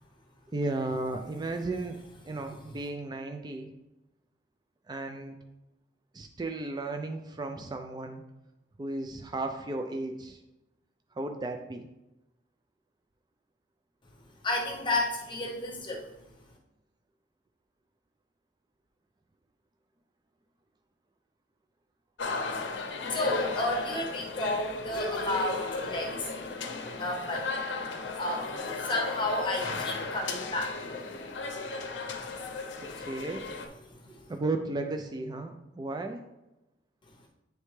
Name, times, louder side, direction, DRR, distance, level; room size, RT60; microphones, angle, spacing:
voice 1, 0.5-2.0 2.2-3.7 4.9-5.4 6.1-8.2 8.8-10.4 11.2-11.9 33.0-33.4 34.1-36.2, right 2 dB, 20° right, 5 dB, 0.4 m, -34 dB
voice 2, 14.4-16.1 23.1-26.3 27.0-27.5 28.2-28.5 28.8-31.1 32.4-33.0 33.8-34.3, left 1 dB, 25° left, 0 dB, 0.7 m, -32 dB
sound 1, 22.2-33.7, left 3 dB, 70° left, 0.7 m, -35 dB
9.1 x 3.2 x 3.2 m, 0.96 s
head